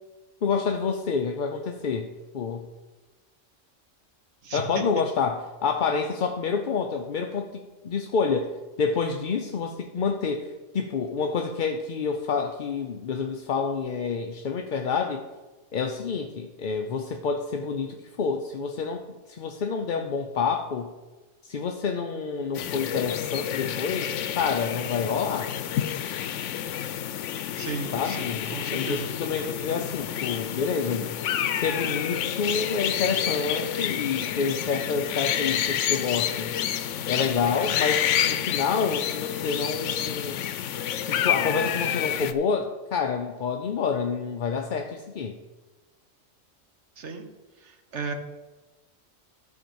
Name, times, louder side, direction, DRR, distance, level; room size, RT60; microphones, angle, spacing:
voice 1, 0.4-2.7 4.5-8.5 8.8-10.5 10.7-15.2 15.7-20.9 21.4-25.5 27.9-31.1 31.6-36.5 37.1-40.4 41.0-45.4, left 5 dB, 50° left, 4 dB, 0.7 m, -28 dB
voice 2, 4.4-4.8 27.5-29.1 47.0-47.3 47.6-48.1, right 5 dB, 70° right, 5 dB, 1.4 m, -35 dB
sound 1, 22.5-42.3, left 10 dB, 85° left, 0.9 m, -29 dB
12.0 x 4.4 x 7.0 m, 1.2 s
omnidirectional pair, 1.2 m